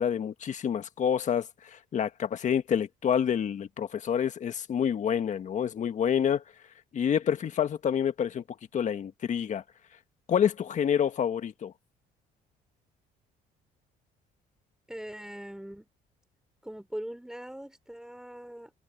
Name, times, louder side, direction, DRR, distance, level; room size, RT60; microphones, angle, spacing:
voice 1, 0.0-6.4 6.9-8.4 8.7-9.6 10.3-11.7, left 8 dB, 45° left, 1.7 m, -28 dB
voice 2, 14.9-15.9 16.6-18.7, right 1 dB, 5° right, 3.7 m, -41 dB
cardioid pair, 110°, 17 cm